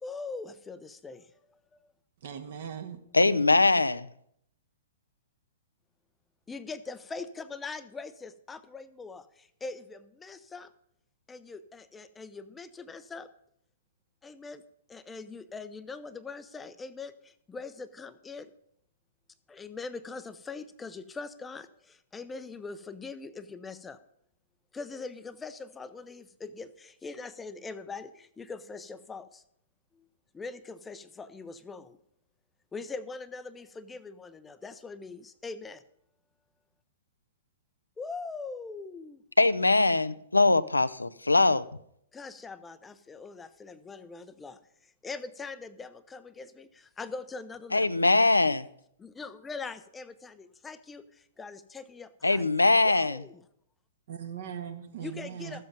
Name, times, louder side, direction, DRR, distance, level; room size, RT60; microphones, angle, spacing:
voice 1, 0.0-1.6 6.5-10.7 11.3-13.3 14.2-14.6 14.9-18.5 19.5-24.0 24.7-29.4 29.9-30.0 30.3-32.0 32.7-35.8 38.0-39.2 42.1-47.9 49.0-52.5 52.8-53.4 55.0-55.6, left 4 dB, 10° left, 0.6 m, -42 dB
voice 2, 2.2-3.0 54.1-55.6, right 8 dB, 55° right, 1.6 m, -39 dB
voice 3, 3.1-4.1 39.4-41.6 47.7-48.7 52.2-53.2, left 2 dB, 85° left, 0.5 m, -22 dB
13.5 x 7.7 x 5.3 m
figure-of-eight pair, 110°, 0 cm